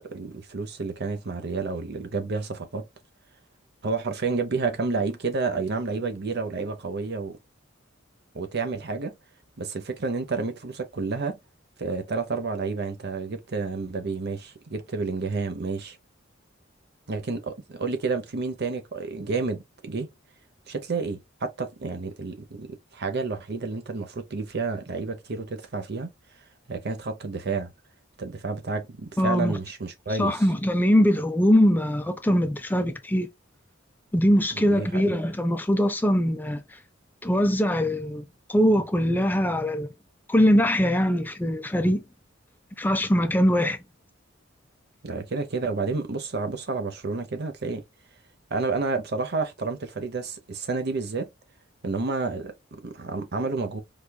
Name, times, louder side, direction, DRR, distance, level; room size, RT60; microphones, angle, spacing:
voice 1, 0.0-2.9 3.8-7.4 8.3-9.1 9.6-11.4 11.8-16.0 17.1-20.1 20.7-26.1 26.7-27.7 28.2-30.5 34.5-35.2 45.0-47.8 48.5-51.3 51.8-53.8, right 4 dB, 55° right, 0.7 m, -30 dB
voice 2, 29.2-29.6 30.2-33.3 34.1-36.6 37.2-38.2 38.5-39.9 40.3-42.0 42.8-43.8, equal, 10° left, 0.4 m, -22 dB
5.0 x 2.3 x 2.3 m
head